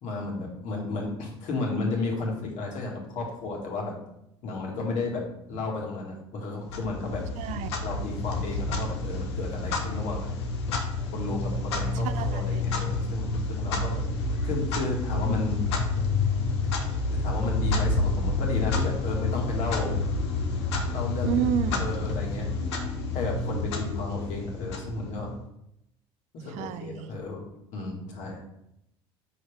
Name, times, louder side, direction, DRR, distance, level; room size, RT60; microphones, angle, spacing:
voice 1, 0.0-3.9 4.4-5.2 5.5-7.2 7.8-10.3 11.1-14.0 14.4-15.6 17.2-20.0 20.9-21.4 21.8-22.5 23.1-25.3 26.3-27.4 27.7-28.4, left 3 dB, 60° left, -1 dB, 1.9 m, -33 dB
Clock, 6.7-25.4, left 3 dB, 85° left, 0.8 m, -29 dB
voice 2, 7.4-7.7 12.0-12.6 21.2-21.9 26.5-27.1, right 10 dB, 60° right, 12 dB, 0.5 m, -30 dB
5.5 x 5.2 x 3.5 m, 0.79 s
hypercardioid pair, 70°, 14 cm